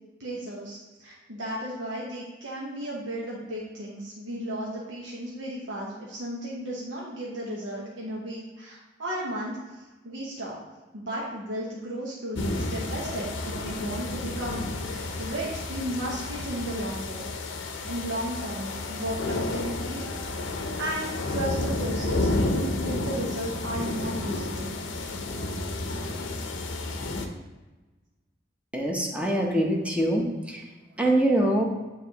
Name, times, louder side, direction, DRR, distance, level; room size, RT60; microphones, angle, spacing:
voice 1, 0.2-10.6 10.9-17.5 17.9-20.3 20.8-24.8, right 1 dB, 85° right, -5 dB, 1.0 m, -34 dB
sound 1, 12.3-27.3, left 2 dB, 90° left, 0.6 m, -31 dB
voice 2, 28.7-30.6 31.0-31.6, right 1 dB, 5° right, 0 dB, 0.8 m, -24 dB
9.5 x 3.4 x 2.9 m, 1.2 s
head